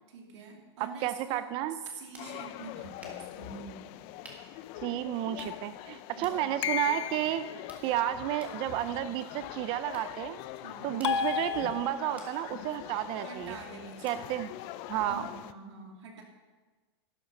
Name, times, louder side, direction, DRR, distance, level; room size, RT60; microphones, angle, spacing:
voice 1, 0.1-3.9 6.1-6.5 10.6-11.0 13.2-14.4 15.1-16.2, right 4 dB, 85° right, 0 dB, 2.6 m, -46 dB
voice 2, 0.8-1.8 4.8-7.4 7.8-10.4 10.8-13.6 14.0-14.5 14.9-15.3, right 13 dB, 35° right, 13 dB, 0.5 m, -32 dB
sound 1, 1.7-15.4, right 2 dB, 10° right, 1.7 m, -58 dB
sound 2, 2.2-15.5, left 14 dB, 40° left, 0.4 m, -44 dB
sound 3, 6.6-7.5 11.0-12.3, left 8 dB, 90° left, 0.6 m, -32 dB
12.0 x 8.7 x 5.3 m, 1.3 s
supercardioid pair, 145°, 14 cm